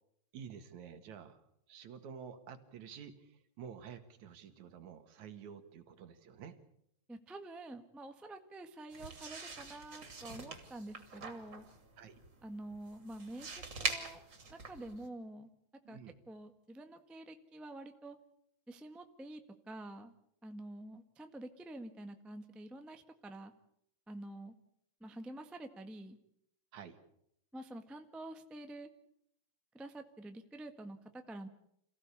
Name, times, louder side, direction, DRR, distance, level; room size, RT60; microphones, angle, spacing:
voice 1, 0.3-1.4 1.7-6.6 12.0-12.2 15.8-16.2 26.7-27.0, right 7 dB, 75° right, 9 dB, 3.1 m, -50 dB
voice 2, 7.1-11.7 12.4-14.2 14.5-15.5 15.9-16.0 16.3-18.2 18.7-19.4 19.7-20.1 20.4-23.5 24.1-24.5 25.0-26.2 27.5-28.9 29.7-31.5, right 1 dB, ahead, 7 dB, 0.5 m, -48 dB
sound 1, 8.9-15.1, right 3 dB, 40° right, 3.4 m, -43 dB
27.5 x 16.0 x 8.4 m, 0.74 s
omnidirectional pair, 3.3 m